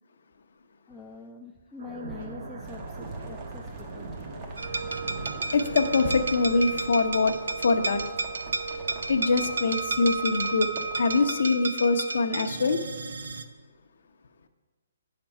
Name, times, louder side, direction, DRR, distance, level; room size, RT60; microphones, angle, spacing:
voice 1, 0.9-4.1, left 3 dB, 5° left, 0 dB, 0.4 m, -44 dB
sound 1, 1.8-6.9, right 2 dB, 60° right, 1.5 m, -40 dB
sound 2, 2.6-11.3, right 3 dB, 30° right, 1.0 m, -44 dB
sound 3, 4.6-13.4, right 3 dB, 85° right, 0.5 m, -32 dB
voice 2, 5.5-8.0 9.1-12.8, left 3 dB, 70° left, 8 dB, 0.7 m, -24 dB
8.9 x 5.9 x 5.4 m, 1.4 s
hypercardioid pair, 150°, 0 cm